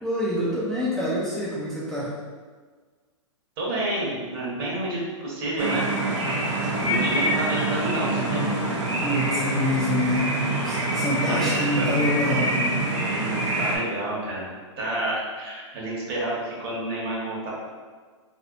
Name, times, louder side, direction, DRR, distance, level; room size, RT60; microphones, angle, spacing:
voice 1, 0.0-2.2 6.4-6.7 8.9-10.3 10.6-12.7, left 1 dB, ahead, -9 dB, 0.6 m, -26 dB
voice 2, 3.6-5.9 6.8-8.4 11.3-11.9 13.1-14.5 14.8-17.5, right 1 dB, 50° right, -5 dB, 1.4 m, -29 dB
sound 1, 5.6-13.8, right 2 dB, 75° right, 0.8 m, -25 dB
3.4 x 2.7 x 2.6 m, 1.5 s
hypercardioid pair, 125°, 16 cm